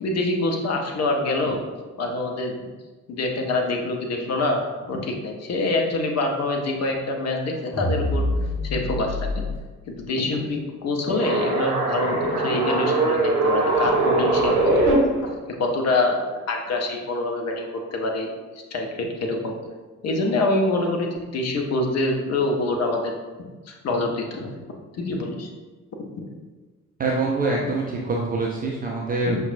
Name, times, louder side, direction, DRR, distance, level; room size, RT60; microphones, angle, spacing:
voice 1, 0.0-1.6 2.0-2.7 3.1-4.6 4.9-8.3 8.6-9.5 9.9-16.2 16.5-18.3 18.7-19.6 20.0-23.1 23.7-24.5 25.0-25.5 29.2-29.4, left 2 dB, 35° left, 1 dB, 0.6 m, -25 dB
sound 1, 7.7-9.6, left 1 dB, ahead, 1.4 m, -26 dB
sound 2, 11.1-14.9, right 2 dB, 85° right, 0.7 m, -22 dB
voice 2, 27.0-29.4, right 3 dB, 20° right, -2 dB, 0.3 m, -25 dB
5.5 x 2.2 x 2.6 m, 1.3 s
figure-of-eight pair, 50°, 45 cm